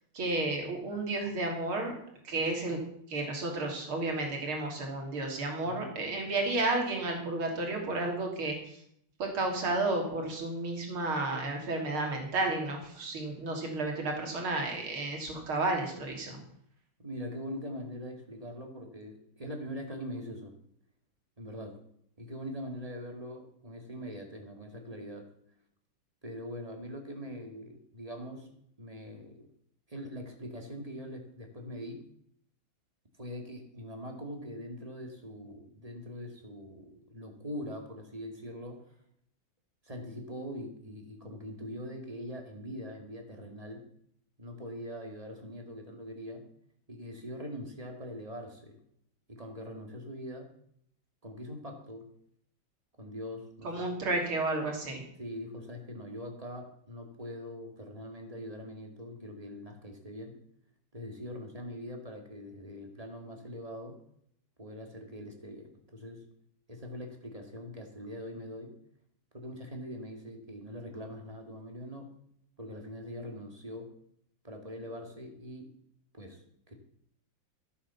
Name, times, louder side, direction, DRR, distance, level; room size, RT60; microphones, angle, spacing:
voice 1, 0.1-1.9 2.2-2.8 3.1-8.6 9.2-16.4 53.6-55.0, right 2 dB, 80° right, 2 dB, 3.8 m, -32 dB
voice 2, 17.0-20.5 21.4-21.7 22.2-25.2 26.2-28.5 28.8-29.4 29.9-32.0 33.2-38.8 39.8-43.8 44.4-46.4 46.9-48.8 49.3-50.5 51.2-52.1 53.0-53.9 55.2-60.4 60.9-64.0 64.6-66.2 66.7-68.7 69.3-72.1 72.6-73.9 74.4-75.7 76.1-76.4 76.7-76.8, equal, 15° right, 3 dB, 2.4 m, -42 dB
14.5 x 8.4 x 7.1 m, 0.69 s
omnidirectional pair, 2.3 m